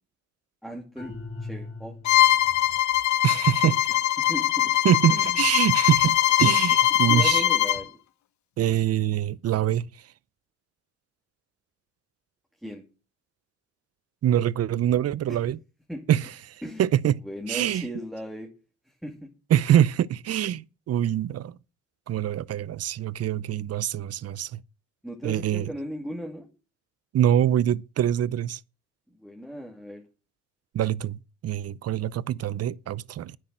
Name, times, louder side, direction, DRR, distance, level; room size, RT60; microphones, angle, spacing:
voice 1, 0.6-1.1 1.4-2.0 4.2-4.7 5.1-5.4 6.9-8.0 12.6-12.8 15.3-15.4 15.9-16.1 16.6-16.8 17.2-18.5 18.9-19.3 25.0-26.5 29.2-30.0, equal, ahead, 2.5 m, -37 dB
sound 1, 1.0-2.4, left 3 dB, 20° left, 3.1 m, -39 dB
Bowed string instrument, 2.1-7.8, left 13 dB, 70° left, 0.9 m, -22 dB
voice 2, 3.2-3.8 4.8-7.4 8.6-10.1 14.2-15.6 16.1-17.2 17.5-17.9 19.5-21.6 22.1-24.6 25.2-25.7 27.1-28.6 30.7-33.4, right 11 dB, 55° right, 0.6 m, -24 dB
9.9 x 8.3 x 7.6 m
cardioid pair, 90°, 30 cm